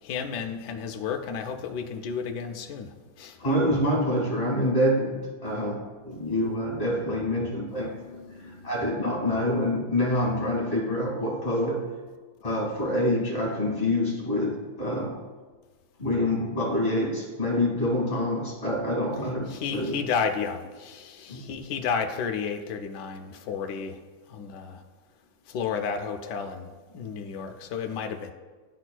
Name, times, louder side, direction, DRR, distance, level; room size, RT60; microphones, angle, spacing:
voice 1, 0.0-3.4 7.6-8.7 19.5-24.0 24.3-24.8 25.5-28.3, left 6 dB, 70° left, 6 dB, 1.0 m, -32 dB
voice 2, 3.4-5.8 6.0-7.9 8.4-11.8 12.4-15.2 16.0-19.9 21.3-21.4, left 1 dB, 30° left, -3 dB, 1.9 m, -26 dB
10.5 x 4.2 x 2.2 m, 1.4 s
omnidirectional pair, 2.2 m